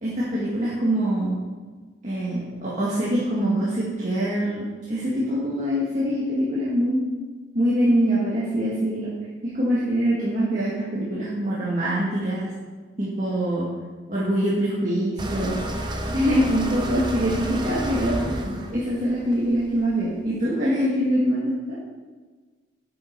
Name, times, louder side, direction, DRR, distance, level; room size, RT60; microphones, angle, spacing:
voice 1, 0.0-1.4 2.0-7.0 7.5-9.1 9.4-12.5 13.0-13.7 14.1-15.6 16.1-21.8, equal, 40° right, -7 dB, 1.7 m, -24 dB
sound 1, 15.2-20.1, right 1 dB, 25° right, 0.9 m, -31 dB
10.5 x 6.9 x 4.6 m, 1.4 s
head